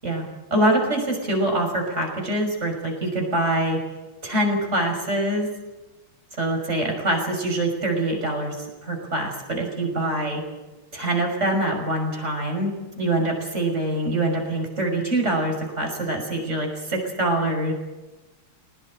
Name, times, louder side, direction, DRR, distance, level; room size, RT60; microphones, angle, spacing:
voice 1, 0.5-3.8 4.2-5.5 6.4-10.4 10.9-17.7, right 1 dB, 30° right, 3 dB, 6.3 m, -24 dB
22.5 x 19.0 x 8.8 m, 1.1 s
omnidirectional pair, 2.4 m